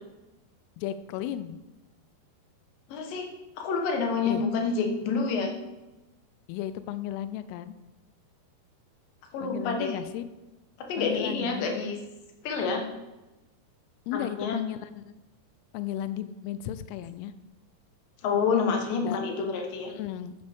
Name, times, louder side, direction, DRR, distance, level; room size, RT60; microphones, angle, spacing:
voice 1, 0.8-1.6 4.3-4.4 6.5-7.7 9.4-10.2 11.0-11.8 14.1-15.0 15.7-17.3 19.1-19.2 19.9-20.4, left 12 dB, 85° left, 12 dB, 2.5 m, -35 dB
voice 2, 2.9-3.3 3.6-5.5 9.3-10.0 10.8-12.0 12.4-12.8 14.1-14.6 18.2-19.9, left 5 dB, 65° left, 3 dB, 2.7 m, -28 dB
12.0 x 8.1 x 3.5 m, 1.0 s
omnidirectional pair, 4.8 m